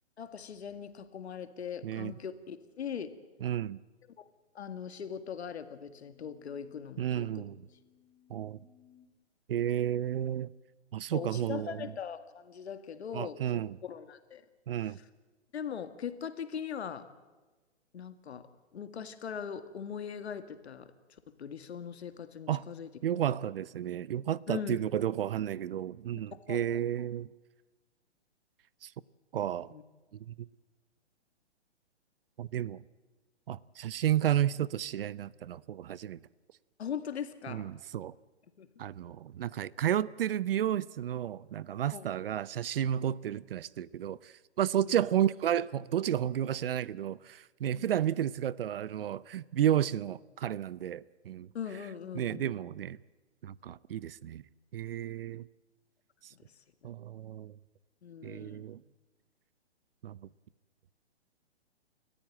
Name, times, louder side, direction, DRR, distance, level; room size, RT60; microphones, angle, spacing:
voice 1, 0.2-3.1 4.2-4.3 4.5-7.5 11.1-14.4 14.8-14.9 15.5-17.1 17.9-20.9 21.4-22.9 24.5-24.8 26.3-26.9 29.7-29.8 36.8-37.7 38.6-38.7 41.9-42.1 44.9-45.0 47.7-47.9 51.5-52.6 58.0-58.6, left 7 dB, 65° left, 2.1 m, -40 dB
voice 2, 3.4-3.8 7.0-7.6 8.3-8.6 9.5-10.5 10.9-11.9 13.1-13.8 14.7-15.0 22.5-22.6 23.0-27.3 28.8-28.9 29.3-29.7 30.3-30.4 32.4-32.8 33.5-36.2 37.5-38.1 38.8-51.5 52.1-53.0 53.4-54.4 54.7-55.5 56.8-57.5 58.2-58.8 60.0-60.2, right 10 dB, 55° right, 0.6 m, -32 dB
sound 1, 4.7-9.1, left 10 dB, 25° left, 3.4 m, -65 dB
28.5 x 14.0 x 8.7 m
hypercardioid pair, 140°, 35 cm